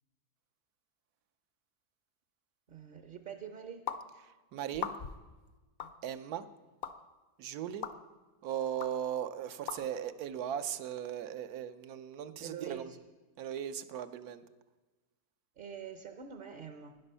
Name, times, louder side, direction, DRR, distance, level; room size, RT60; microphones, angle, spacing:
voice 1, 2.7-3.9 12.4-13.0 15.6-16.9, right 8 dB, 45° right, 7 dB, 0.7 m, -45 dB
sound 1, 3.9-4.0 4.7-5.2 5.8-5.9 6.8-6.9 7.8-8.0 8.8-8.9 9.7-9.8, left 8 dB, 55° left, 0.6 m, -38 dB
voice 2, 4.5-4.9 6.0-6.5 7.4-7.9 8.4-12.9 13.4-14.4, right 9 dB, 80° right, 11 dB, 1.2 m, -38 dB
12.5 x 9.9 x 5.5 m, 1.2 s
omnidirectional pair, 1.6 m